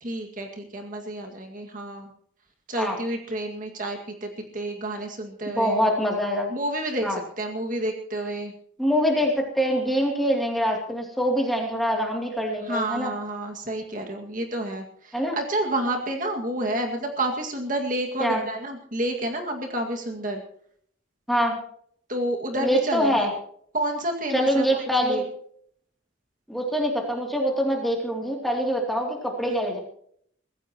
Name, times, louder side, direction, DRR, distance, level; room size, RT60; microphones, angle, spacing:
voice 1, 0.0-2.1 2.7-5.8 6.5-8.5 12.6-20.4 22.1-23.3 23.7-25.2 29.5-29.6, right 1 dB, 40° right, 2 dB, 2.1 m, -30 dB
voice 2, 5.5-6.5 7.0-7.2 8.8-13.1 15.1-15.4 18.2-18.4 21.3-21.6 22.6-23.3 24.3-25.2 26.5-29.8, equal, ahead, 0 dB, 2.8 m, -24 dB
23.5 x 15.5 x 3.0 m, 0.64 s
head